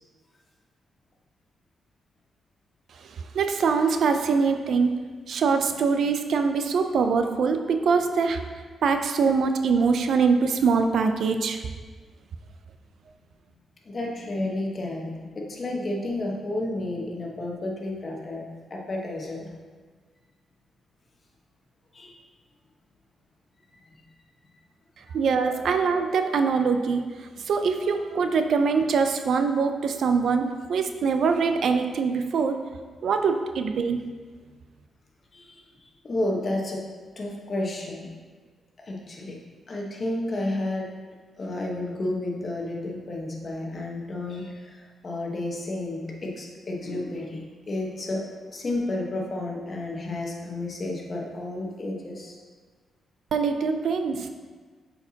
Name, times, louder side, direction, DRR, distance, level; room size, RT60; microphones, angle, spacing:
voice 1, 3.0-4.9 5.3-8.4 8.8-11.6 25.1-32.6 33.0-34.0 53.3-54.3, right 5 dB, 70° right, 7 dB, 0.4 m, -23 dB
voice 2, 13.8-18.4 18.7-19.5 21.9-22.1 23.8-24.1 35.3-36.8 37.2-38.1 38.8-39.4 39.7-40.9 41.4-48.2 48.5-52.4, left 1 dB, 45° left, -1 dB, 1.2 m, -31 dB
7.9 x 4.6 x 2.8 m, 1.5 s
cardioid pair, 90°, 0 cm